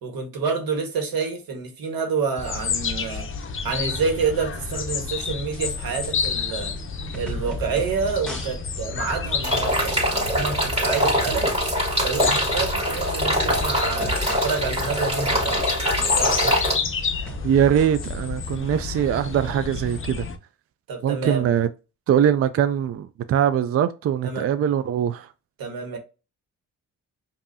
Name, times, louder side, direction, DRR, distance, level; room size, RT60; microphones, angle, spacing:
voice 1, 0.0-3.3 3.6-6.7 7.1-11.5 12.0-15.6 15.9-16.6 20.9-21.5 24.2-24.5 25.6-26.0, right 5 dB, 85° right, 1.5 m, -28 dB
sound 1, 2.4-20.4, left 5 dB, 35° left, 0.7 m, -30 dB
sound 2, 5.3-5.7 6.0-6.1 6.8-6.9 7.1-8.0 8.3-8.5 8.8-8.9 9.3-9.4 9.8-11.7 12.0-12.4 12.8-12.9 13.3-14.5 14.8-15.4 16.0-16.9 17.3-18.1, equal, ahead, 1.6 m, -36 dB
sound 3, 9.4-16.7, equal, 15° right, 2.2 m, -23 dB
voice 2, 17.4-20.3 21.0-21.7 22.1-25.3, right 9 dB, 45° right, 0.4 m, -22 dB
5.2 x 2.7 x 2.7 m
cardioid pair, 90°, 34 cm